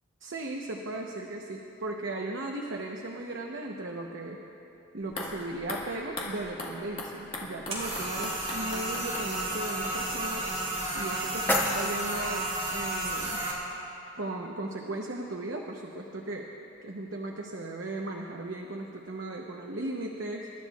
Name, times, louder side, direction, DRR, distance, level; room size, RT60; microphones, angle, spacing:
voice 1, 0.2-4.4 4.9-10.5 10.9-13.4 14.2-16.5 16.8-20.5, right 2 dB, 65° right, 0 dB, 0.9 m, -37 dB
sound 1, 5.0-12.1 12.4-12.5, left 2 dB, 30° left, 1.7 m, -41 dB
sound 2, 7.7-13.5, right 1 dB, 30° right, 3.2 m, -32 dB
sound 3, 10.7-12.7, left 1 dB, 10° left, 1.0 m, -32 dB
27.5 x 12.5 x 2.4 m, 3.0 s
head